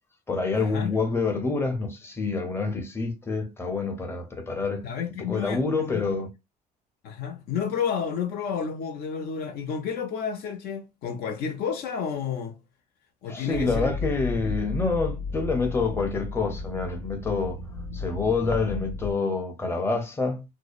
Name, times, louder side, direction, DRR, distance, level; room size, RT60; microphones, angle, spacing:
voice 1, 0.3-4.9 5.3-6.3 13.3-17.6 17.9-20.4, left 4 dB, 15° left, 0.7 m, -27 dB
voice 2, 4.8-6.1 7.0-12.6 13.2-14.0 14.4-14.6, left 7 dB, 70° left, 0.6 m, -31 dB
sound 1, 13.5-19.1, left 3 dB, 55° left, 0.9 m, -33 dB
2.7 x 2.0 x 2.4 m
cardioid pair, 110°, 17 cm